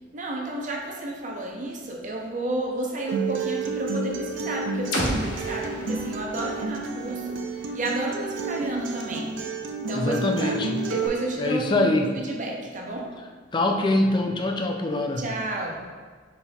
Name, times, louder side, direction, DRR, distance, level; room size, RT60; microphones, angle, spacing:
voice 1, 0.1-9.3 9.8-10.5 10.8-13.1 15.2-15.8, right 2 dB, 40° right, 0 dB, 0.6 m, -32 dB
Acoustic guitar, 3.1-11.1, right 4 dB, 90° right, 0.5 m, -30 dB
sound 1, 4.9-8.8, left 1 dB, 75° left, 1.0 m, -34 dB
voice 2, 9.9-10.8 11.4-12.1 13.5-15.2, left 2 dB, 25° left, 3 dB, 0.3 m, -24 dB
5.5 x 4.1 x 2.3 m, 1.5 s
head